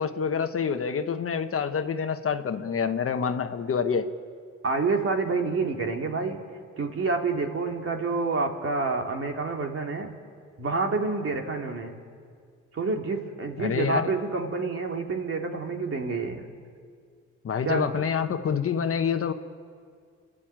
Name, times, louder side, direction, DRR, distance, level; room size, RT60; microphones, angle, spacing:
voice 1, 0.0-4.1 13.6-14.1 17.4-19.3, left 6 dB, 45° left, 7 dB, 1.3 m, -27 dB
voice 2, 4.6-6.4 6.8-10.1 10.6-12.0 12.7-16.5 17.6-17.9, right 3 dB, 45° right, 2 dB, 2.9 m, -28 dB
29.0 x 11.5 x 9.0 m, 2.1 s
cardioid pair, 90°, 30 cm